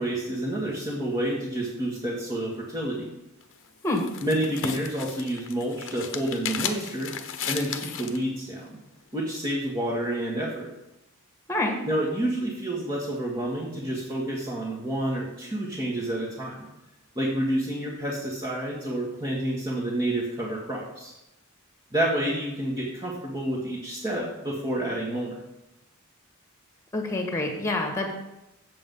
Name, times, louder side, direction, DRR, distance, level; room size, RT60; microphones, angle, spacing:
voice 1, 0.0-3.1 4.2-7.1 7.5-8.7 9.1-10.7 11.8-16.7 17.1-21.1 21.9-25.4, right 1 dB, 20° right, -6 dB, 1.6 m, -29 dB
sound 1, 3.4-8.2, left 8 dB, 60° left, 0.8 m, -35 dB
voice 2, 26.9-28.1, left 2 dB, 15° left, 3 dB, 1.7 m, -26 dB
7.6 x 7.5 x 5.5 m, 0.94 s
head